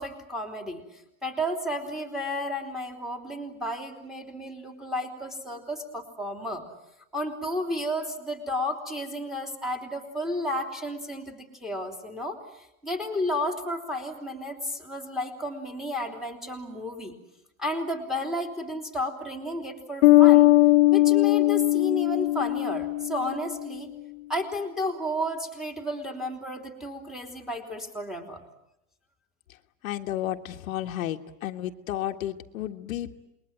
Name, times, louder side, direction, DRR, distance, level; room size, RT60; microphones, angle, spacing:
voice 1, 0.0-6.6 7.1-17.1 17.6-20.5 20.9-23.9 24.3-28.4, equal, ahead, 2 dB, 3.1 m, -32 dB
Bass guitar, 20.0-23.6, left 18 dB, 55° left, 1.4 m, -19 dB
voice 2, 29.8-33.2, left 12 dB, 70° left, 5 dB, 1.6 m, -32 dB
28.0 x 21.5 x 9.2 m, 0.86 s
supercardioid pair, 155°, 42 cm